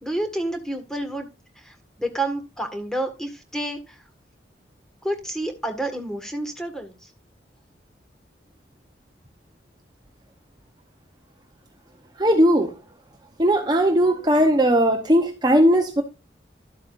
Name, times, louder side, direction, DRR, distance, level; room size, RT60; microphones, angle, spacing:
voice 1, 0.0-1.3 1.6-4.0 5.0-7.1, right 1 dB, 5° left, 1.7 m, -29 dB
voice 2, 12.2-12.7 13.4-16.0, equal, 25° right, 0.9 m, -18 dB
12.0 x 8.3 x 2.6 m
head